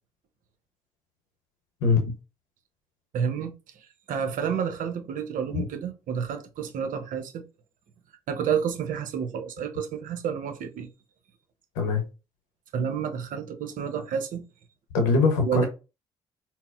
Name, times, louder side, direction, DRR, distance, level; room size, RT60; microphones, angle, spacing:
voice 1, 1.8-2.1 5.5-5.6 11.8-12.0 14.9-15.7, left 4 dB, 80° left, 0.8 m, -22 dB
voice 2, 3.1-7.4 8.3-10.9 12.7-14.4 15.4-15.7, right 7 dB, 60° right, 0.7 m, -30 dB
4.0 x 2.0 x 2.3 m
hypercardioid pair, 50°, 15 cm